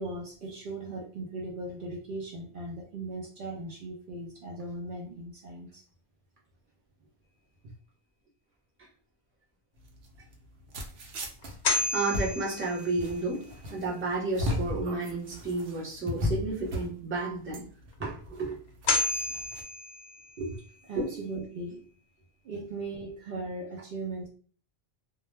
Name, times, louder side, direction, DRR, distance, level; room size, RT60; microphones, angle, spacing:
voice 1, 0.0-5.8 20.4-20.6 20.8-21.9 22.4-24.3, right 2 dB, 60° right, -1 dB, 0.6 m, -38 dB
sound 1, 9.8-19.6, left 2 dB, 90° right, 0.9 m, -36 dB
sound 2, 11.4-13.5 18.5-18.6 18.9-20.8, left 3 dB, 60° left, 0.6 m, -31 dB
voice 2, 11.9-13.4 13.7-17.6 18.0-18.6 21.0-21.2, right 3 dB, 15° right, -4 dB, 0.7 m, -31 dB
2.2 x 2.1 x 3.1 m, 0.41 s
omnidirectional pair, 1.0 m